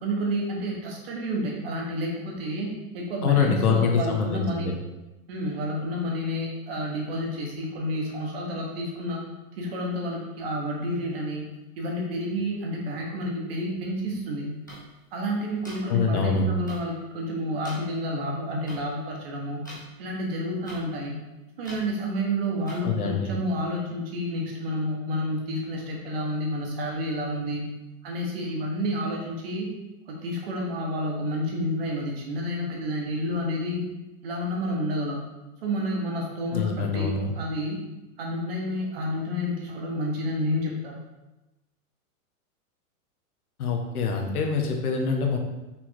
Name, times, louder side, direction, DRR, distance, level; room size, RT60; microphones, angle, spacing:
voice 1, 0.0-4.7 5.3-9.2 9.6-11.5 11.8-14.5 15.1-19.6 20.0-21.1 21.6-27.7 28.0-29.7 30.1-33.8 34.2-35.2 35.6-37.8 38.2-41.0, equal, 40° right, -1 dB, 1.5 m, -30 dB
voice 2, 3.2-4.7 15.9-16.5 22.8-23.4 36.5-37.3 43.6-45.4, left 5 dB, 85° left, 2 dB, 1.5 m, -25 dB
sound 1, 14.7-14.8 15.6-15.8 16.7-16.8 17.6-17.7 18.7-18.8 19.6-19.8 20.6-20.8 21.6-21.8 22.6-22.8, equal, 15° left, 0.3 m, -42 dB
5.6 x 4.4 x 4.7 m, 1.0 s
supercardioid pair, 180°, 43 cm